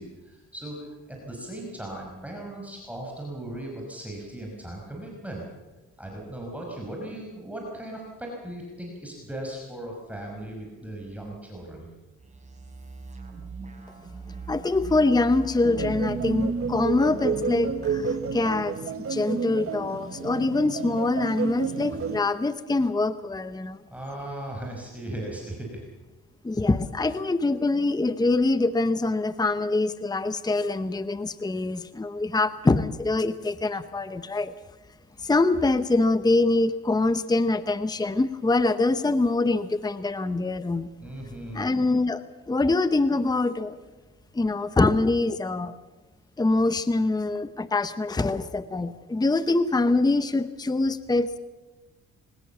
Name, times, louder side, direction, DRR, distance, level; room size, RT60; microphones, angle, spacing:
voice 1, 0.0-5.4 6.0-11.9 23.9-25.8 41.0-41.7, right 1 dB, 5° right, -1 dB, 5.6 m, -37 dB
sound 1, 12.2-18.4, right 3 dB, 25° right, 6.3 m, -42 dB
voice 2, 14.5-23.8 26.4-34.5 35.2-40.9 41.5-43.8 44.3-45.7 46.4-51.4, left 2 dB, 15° left, 13 dB, 0.9 m, -24 dB
sound 2, 15.6-22.2, right 5 dB, 45° right, 1.5 m, -30 dB
22.5 x 20.0 x 7.2 m, 1.2 s
cardioid pair, 90°, 30 cm